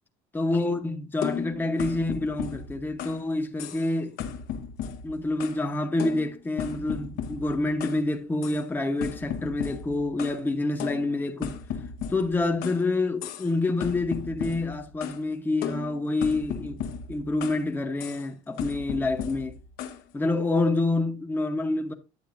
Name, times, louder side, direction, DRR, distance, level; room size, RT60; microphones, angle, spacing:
voice 1, 0.3-4.1 5.0-11.6 12.1-16.8 17.1-19.6 20.1-21.9, left 2 dB, 10° left, 1.0 m, -27 dB
sound 1, 1.2-3.3 3.6-3.9 4.2-5.7 6.0-8.0 8.4-8.6 9.0-10.4 10.8-12.8 13.2-13.5 13.8-15.2 15.6-17.7 18.0-18.3 18.6-20.0, left 8 dB, 75° left, 1.1 m, -36 dB
9.8 x 7.7 x 2.6 m
cardioid pair, 120°, 16 cm